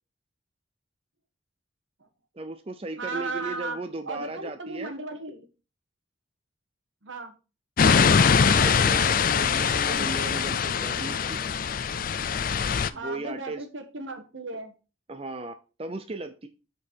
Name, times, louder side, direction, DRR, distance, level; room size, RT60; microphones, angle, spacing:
voice 1, 2.3-4.9 8.3-11.4 12.9-13.6 15.1-15.5 15.8-16.5, right 3 dB, 30° right, 7 dB, 0.5 m, -36 dB
voice 2, 3.0-3.8 4.1-5.5 7.0-7.3 9.0-9.5 12.9-14.7, right 3 dB, 75° right, 7 dB, 1.4 m, -36 dB
sound 1, 7.8-12.9, left 6 dB, 45° left, 0.4 m, -22 dB
8.1 x 4.4 x 5.2 m, 0.33 s
head